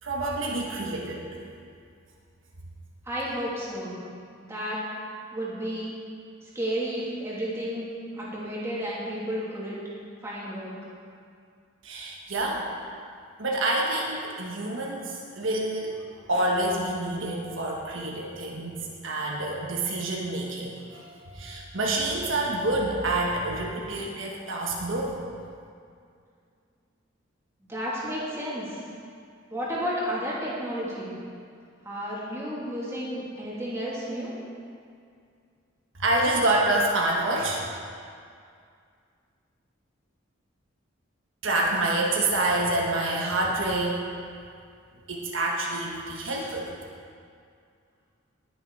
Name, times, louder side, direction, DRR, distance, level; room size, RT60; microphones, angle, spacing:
voice 1, 0.0-1.5 11.8-12.7 13.4-25.2 36.0-37.7 41.4-44.0 45.1-46.7, right 2 dB, 70° right, -2 dB, 1.4 m, -27 dB
voice 2, 3.1-4.0 4.5-4.8 5.3-5.9 6.5-7.9 8.2-9.8 10.2-10.7 27.7-28.8 29.5-31.2 31.8-34.3, equal, 15° right, -7 dB, 2.8 m, -32 dB
19.5 x 7.1 x 4.8 m, 2.3 s
head